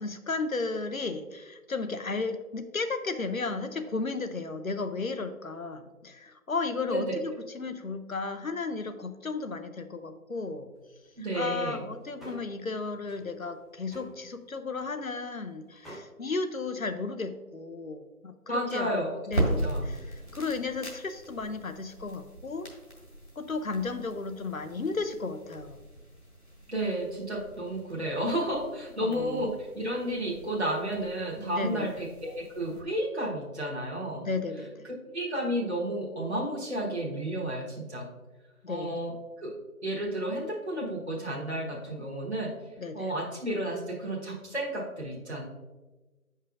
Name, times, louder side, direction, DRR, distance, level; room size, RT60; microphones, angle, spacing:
voice 1, 0.0-10.7 11.2-18.9 19.3-22.7 23.4-25.8 29.0-29.5 31.4-31.9 34.2-34.9 38.6-39.0 42.8-43.1, left 3 dB, 65° left, 9 dB, 0.6 m, -34 dB
voice 2, 6.9-7.2 11.2-11.8 18.5-19.2 19.6-19.9 26.7-34.2 35.1-38.1 38.7-39.6 39.8-42.5 42.9-45.4, right 1 dB, 45° right, -4 dB, 1.2 m, -32 dB
sound 1, 10.8-10.9 11.1-11.7 11.9-12.6 12.9-13.2 13.6-14.5 14.8-15.0 15.3-15.4 15.8-16.0, right 1 dB, ahead, 0.7 m, -48 dB
sound 2, 19.2-32.8, right 1 dB, 45° left, 1.6 m, -38 dB
8.1 x 5.5 x 2.5 m, 1.2 s
figure-of-eight pair, 175°, 45 cm